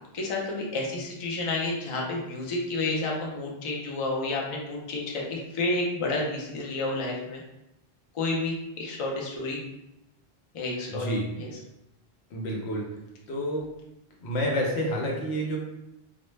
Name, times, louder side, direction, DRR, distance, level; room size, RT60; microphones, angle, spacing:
voice 1, 0.1-7.4 8.1-9.6 10.5-11.1 11.4-11.5, left 2 dB, 45° left, -2 dB, 0.4 m, -30 dB
voice 2, 10.9-11.2 12.3-12.9 13.3-13.7 14.2-15.6, equal, 85° left, -1 dB, 0.9 m, -29 dB
2.1 x 2.1 x 3.1 m, 0.89 s
omnidirectional pair, 1.1 m